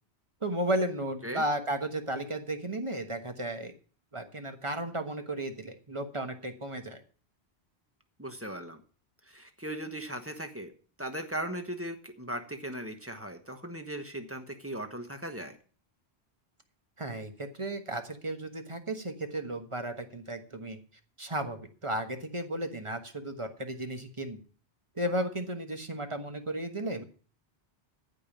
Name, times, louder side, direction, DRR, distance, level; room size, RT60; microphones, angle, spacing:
voice 1, 0.4-3.7 4.1-7.0 17.0-20.8 21.2-24.4 25.0-27.0, right 1 dB, 30° right, 6 dB, 1.3 m, -34 dB
voice 2, 8.2-8.8 9.3-10.7 11.0-15.6, right 1 dB, 15° right, 6 dB, 1.2 m, -38 dB
14.5 x 5.3 x 7.2 m, 0.41 s
omnidirectional pair, 1.1 m